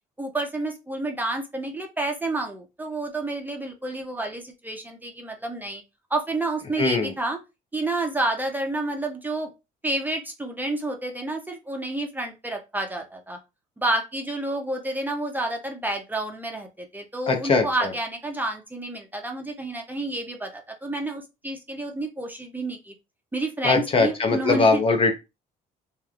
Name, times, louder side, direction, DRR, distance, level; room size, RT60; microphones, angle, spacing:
voice 1, 0.2-5.8 6.1-7.4 7.7-9.5 9.8-13.4 13.8-22.9 23.3-24.8, right 2 dB, 10° right, 3 dB, 0.5 m, -29 dB
voice 2, 6.8-7.1 17.3-17.9 23.6-25.1, left 3 dB, 30° left, 5 dB, 0.6 m, -21 dB
2.9 x 2.4 x 2.3 m, 0.25 s
cardioid pair, 110°, 17 cm